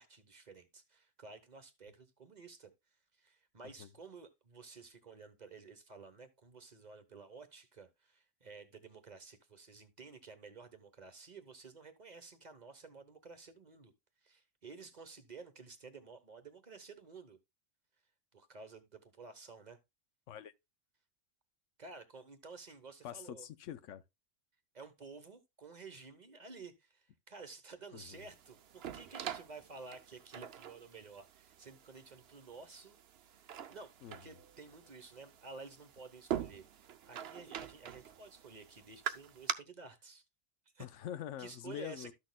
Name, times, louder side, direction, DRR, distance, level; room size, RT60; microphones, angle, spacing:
voice 1, 0.0-2.7 3.1-13.9 14.2-17.4 18.3-19.8 21.8-23.5 24.7-40.2 40.7-40.9 41.4-42.1, right 4 dB, 40° right, 1.0 m, -52 dB
voice 2, 23.0-24.0 27.9-28.3 34.0-34.2 40.8-42.1, left 10 dB, 85° left, 1.0 m, -45 dB
sound 1, 28.1-39.5, right 9 dB, 60° right, 0.8 m, -45 dB
13.0 x 6.3 x 2.2 m
omnidirectional pair, 1.3 m